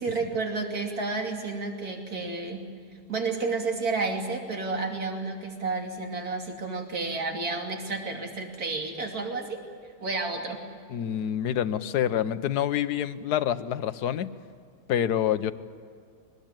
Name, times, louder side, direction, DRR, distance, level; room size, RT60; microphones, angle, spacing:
voice 1, 0.0-2.7 3.1-9.6 10.0-10.7, right 3 dB, 60° right, 2 dB, 3.3 m, -31 dB
voice 2, 10.9-14.3 14.9-15.5, left 10 dB, 70° left, 13 dB, 1.4 m, -27 dB
23.0 x 20.0 x 8.9 m, 2.3 s
omnidirectional pair, 1.8 m